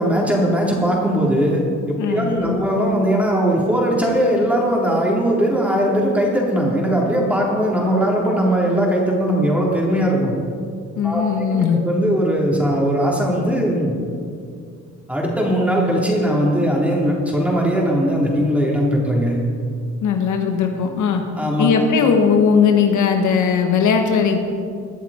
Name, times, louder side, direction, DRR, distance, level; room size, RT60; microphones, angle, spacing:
voice 1, 0.0-1.6 1.9-10.3 11.0-11.2 11.5-11.6 11.8-13.9 15.1-19.4 21.4-21.7, equal, 5° right, -3 dB, 3.5 m, -19 dB
voice 2, 2.0-2.6 11.0-11.8 20.0-21.2 21.6-24.4, left 6 dB, 75° left, 4 dB, 1.4 m, -18 dB
21.5 x 7.3 x 4.4 m, 2.3 s
cardioid pair, 90°, 30 cm